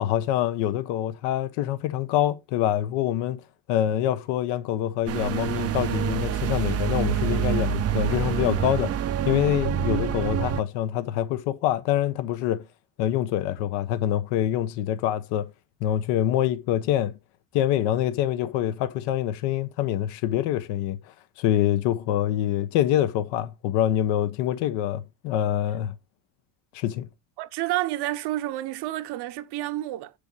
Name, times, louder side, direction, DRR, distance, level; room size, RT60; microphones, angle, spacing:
voice 1, 0.0-3.4 3.7-8.9 9.2-12.6 13.0-15.5 15.8-17.2 17.5-21.0 21.4-25.9 26.7-27.1, left 12 dB, 80° left, 1.3 m, -25 dB
sound 1, 5.1-10.6, right 10 dB, 35° right, 0.6 m, -26 dB
voice 2, 27.4-30.1, right 15 dB, 70° right, 1.1 m, -29 dB
7.7 x 6.9 x 5.8 m
supercardioid pair, 105°, 41 cm